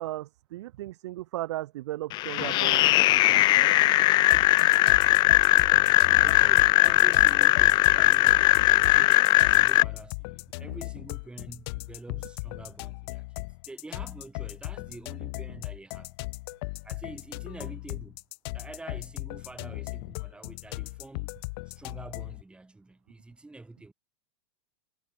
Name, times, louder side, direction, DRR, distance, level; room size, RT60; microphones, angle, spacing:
voice 1, 0.0-3.7 4.6-4.7 8.8-8.9, right 15 dB, 70° right, 3.4 m, -36 dB
sound 1, 2.1-9.8, left 18 dB, 30° left, 0.3 m, -20 dB
sound 2, 4.3-22.4, left 25 dB, 55° left, 1.7 m, -38 dB
voice 2, 6.2-8.5 8.8-13.3 13.7-16.2 16.8-18.2 18.5-21.4 21.7-23.9, right 2 dB, 5° right, 4.4 m, -46 dB
supercardioid pair, 135°, 15 cm